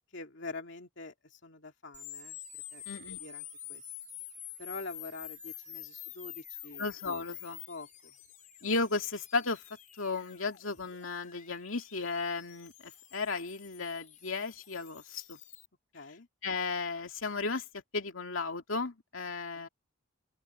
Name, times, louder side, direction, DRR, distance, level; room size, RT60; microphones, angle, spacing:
voice 1, 0.1-2.4 2.7-2.8 3.1-3.8 4.6-6.9 7.7-8.1 15.9-16.3 19.5-19.7, left 3 dB, 60° left, 2.6 m, -45 dB
sound 1, 1.9-15.7, left 12 dB, 40° left, 5.1 m, -48 dB
voice 2, 2.9-3.2 6.8-7.6 8.6-9.6 10.0-15.4 16.4-17.6 17.9-19.7, left 3 dB, 80° left, 2.5 m, -34 dB
open air
head